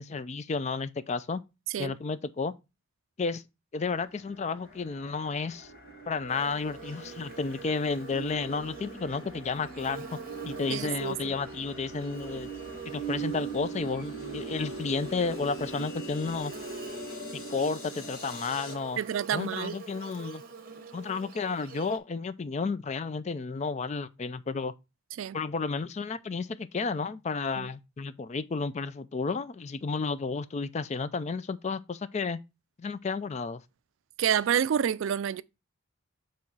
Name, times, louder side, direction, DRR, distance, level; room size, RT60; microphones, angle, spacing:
voice 1, 0.0-1.4 1.8-2.5 3.2-3.4 3.7-5.7 6.1-10.2 10.4-12.5 12.9-16.5 17.3-19.0 19.3-20.4 20.9-24.7 25.3-32.4 32.8-33.6, left 4 dB, 35° left, 0.4 m, -32 dB
sound 1, 3.8-18.7, right 4 dB, 50° left, 1.8 m, -41 dB
Buzz, 6.3-22.0, right 4 dB, 45° right, 0.8 m, -46 dB
voice 2, 10.7-11.4 19.0-19.8 25.2-25.4 27.6-27.7 34.2-35.4, right 9 dB, 70° right, 0.3 m, -28 dB
7.2 x 3.1 x 4.5 m
head